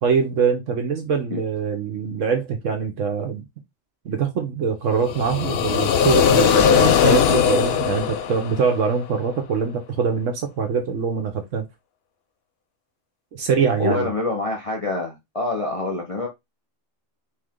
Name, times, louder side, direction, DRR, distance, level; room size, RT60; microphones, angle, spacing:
voice 1, 0.0-3.4 4.0-11.7 13.3-14.1, right 6 dB, 80° right, 1.2 m, -23 dB
sound 1, 5.0-9.0, left 8 dB, 65° left, 0.8 m, -19 dB
voice 2, 13.8-16.3, left 3 dB, 30° left, 0.8 m, -26 dB
4.3 x 3.2 x 3.7 m
omnidirectional pair, 1.3 m